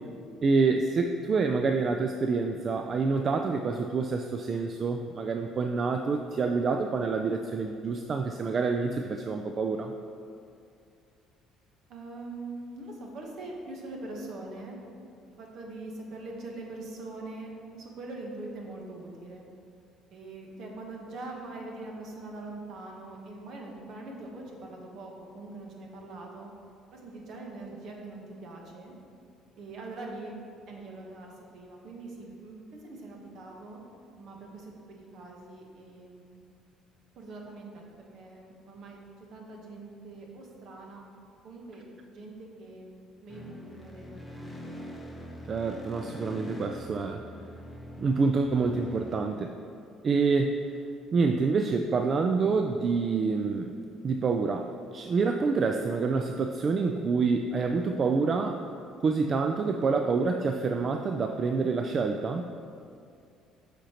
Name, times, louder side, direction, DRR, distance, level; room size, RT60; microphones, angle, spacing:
voice 1, 0.4-9.9 45.5-47.2 48.0-49.5 50.0-50.6 51.1-53.8 54.0-58.6 59.0-62.5, right 4 dB, 40° right, 5 dB, 0.3 m, -27 dB
voice 2, 11.9-14.8 15.3-19.4 20.1-26.5 26.9-28.9 29.6-30.3 30.7-33.8 34.2-36.4 37.1-39.0 39.3-41.1 41.4-44.7, right 2 dB, 60° right, 0 dB, 1.1 m, -43 dB
sound 1, 43.3-49.2, equal, 10° left, 0.9 m, -43 dB
7.5 x 5.1 x 2.9 m, 2.4 s
cardioid pair, 100°, 0 cm